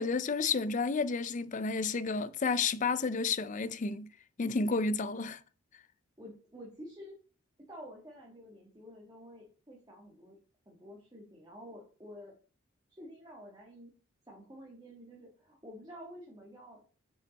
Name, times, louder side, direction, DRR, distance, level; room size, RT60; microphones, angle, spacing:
voice 1, 0.0-4.1 4.4-5.4, left 4 dB, 35° left, 0.4 m, -31 dB
voice 2, 6.2-7.1 7.7-10.4 10.6-12.3 12.9-13.9 14.3-16.8, equal, 20° right, 1.6 m, -50 dB
6.9 x 5.7 x 4.0 m
head